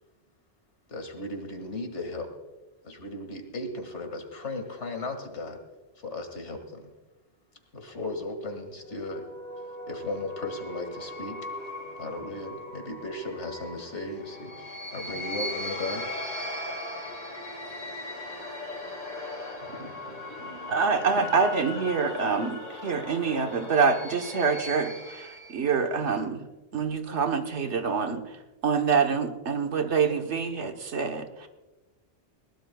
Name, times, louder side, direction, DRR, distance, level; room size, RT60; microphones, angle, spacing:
voice 1, 0.9-2.3 2.8-5.6 6.0-6.9 7.7-9.2 9.9-11.4 12.0-16.1, left 2 dB, 85° left, 5 dB, 2.3 m, -36 dB
sound 1, 8.9-25.7, left 1 dB, 40° left, 3.2 m, -38 dB
voice 2, 16.7-20.8 21.2-21.3 22.1-22.4, right 1 dB, 60° right, 2 dB, 3.2 m, -49 dB
voice 3, 20.7-25.3 25.5-26.5 26.7-28.2 28.6-31.5, right 5 dB, 80° right, 5 dB, 1.4 m, -26 dB
21.0 x 18.5 x 2.3 m, 1.1 s
omnidirectional pair, 1.2 m